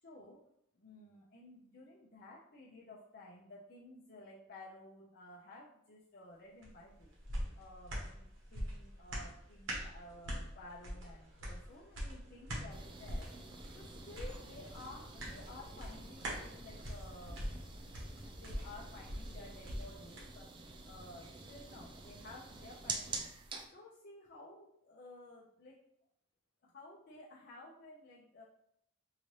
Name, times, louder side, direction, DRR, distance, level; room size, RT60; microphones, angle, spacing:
voice 1, 0.0-0.4 0.7-7.1 7.5-13.4 13.7-17.6 18.2-20.5 20.8-23.3 23.7-25.8 26.6-28.4, left 2 dB, 50° left, -5 dB, 0.6 m, -54 dB
sound 1, 6.6-20.3 20.7-20.8, equal, 75° right, 1.3 m, -44 dB
sound 2, 12.7-23.7, right 3 dB, 25° right, 0.3 m, -48 dB
4.7 x 2.7 x 3.2 m, 0.73 s
head